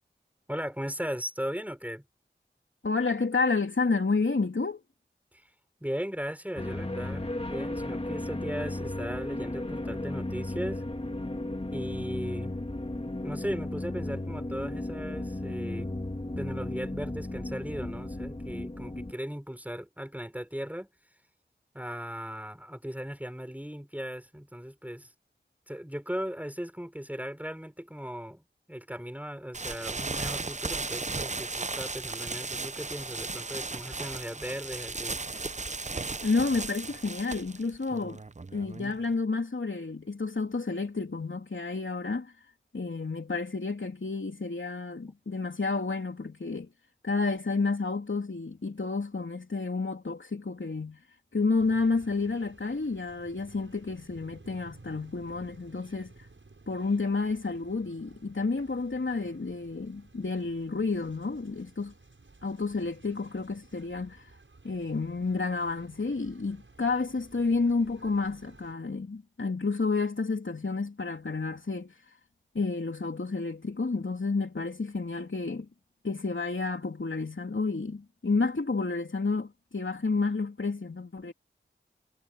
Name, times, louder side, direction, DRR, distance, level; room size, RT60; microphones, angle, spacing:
voice 1, 0.5-2.1 5.3-5.5 5.8-10.8 11.7-12.5 13.2-15.9 16.4-20.9 21.7-25.1 25.7-28.4 28.7-35.2, equal, 10° right, 5.5 m, -37 dB
voice 2, 2.8-4.8 36.2-38.2 38.5-42.3 42.7-46.7 47.0-51.0 51.3-56.1 56.7-61.9 62.4-64.2 64.6-71.9 72.5-75.7 76.0-81.3, left 3 dB, 75° left, 3.2 m, -30 dB
sound 1, 6.6-19.1, left 1 dB, 30° left, 1.9 m, -35 dB
sound 2, 29.5-39.1, right 3 dB, 35° right, 0.7 m, -36 dB
sound 3, 51.5-68.7, right 3 dB, 80° right, 7.9 m, -55 dB
wide cardioid pair, 40°, 20 cm